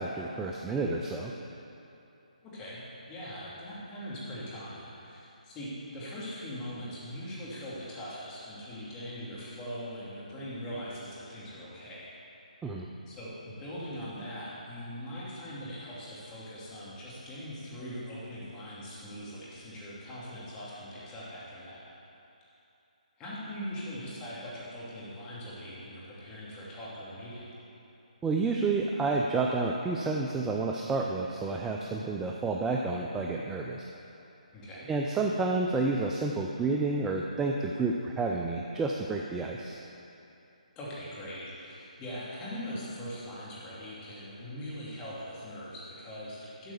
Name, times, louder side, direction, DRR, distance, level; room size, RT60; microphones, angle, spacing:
voice 1, 0.0-1.3 12.6-12.9 28.2-33.8 34.9-39.8, right 3 dB, 10° right, 0 dB, 0.4 m, -30 dB
voice 2, 2.4-2.8 3.1-12.1 13.1-21.8 23.2-27.5 34.5-34.9 40.8-46.7, equal, 15° left, -8 dB, 2.5 m, -41 dB
12.0 x 4.6 x 7.0 m, 2.9 s
figure-of-eight pair, 150°, 4 cm